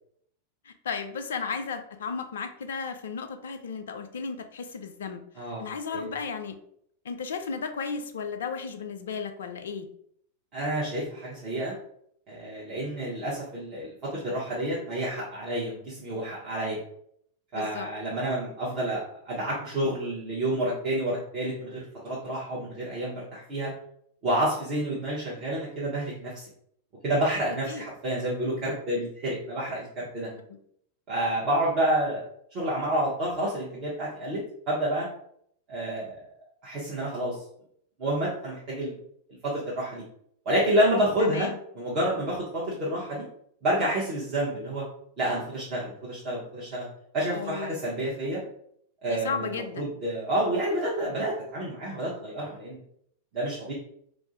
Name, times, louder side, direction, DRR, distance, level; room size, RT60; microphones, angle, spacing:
voice 1, 0.7-5.2 5.6-6.6 7.1-9.9 17.5-17.9 27.7-27.8 41.2-41.6 47.3-47.8 49.1-49.9, left 5 dB, 65° left, 7 dB, 0.3 m, -34 dB
voice 2, 10.5-11.7 12.3-16.8 17.5-23.7 24.2-26.5 27.0-30.3 31.1-32.2 32.5-35.1 35.7-36.3 36.6-37.4 38.0-39.0 39.3-40.0 40.4-41.5 41.7-43.2 43.6-44.9 45.2-46.9 47.1-48.4 49.0-52.8 53.3-53.7, right 1 dB, 40° right, -7 dB, 0.8 m, -29 dB
2.4 x 2.0 x 3.8 m, 0.69 s
figure-of-eight pair, 90°, 0 cm